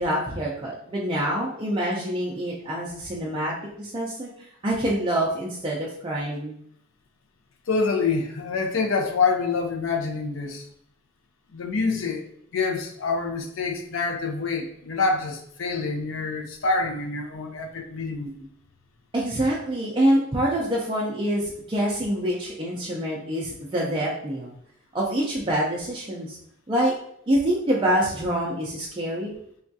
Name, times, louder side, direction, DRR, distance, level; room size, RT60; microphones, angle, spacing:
voice 1, 0.0-6.6 19.1-24.5 24.9-26.4 26.7-26.9 27.3-29.3, right 1 dB, 25° right, -5 dB, 0.4 m, -26 dB
voice 2, 7.7-10.7 11.5-18.5, left 4 dB, 70° left, 3 dB, 0.5 m, -26 dB
3.4 x 2.3 x 2.6 m, 0.70 s
head